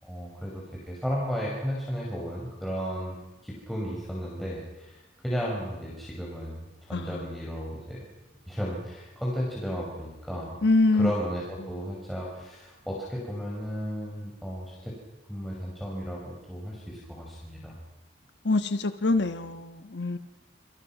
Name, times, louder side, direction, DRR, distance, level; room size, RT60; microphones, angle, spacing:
voice 1, 0.0-3.2 3.4-8.0 8.4-10.6 10.9-14.9 15.3-17.8, equal, ahead, -5 dB, 5.9 m, -34 dB
voice 2, 6.9-7.2 10.6-11.1 18.4-20.2, left 2 dB, 70° left, 8 dB, 1.3 m, -24 dB
30.0 x 28.0 x 6.0 m, 1.1 s
head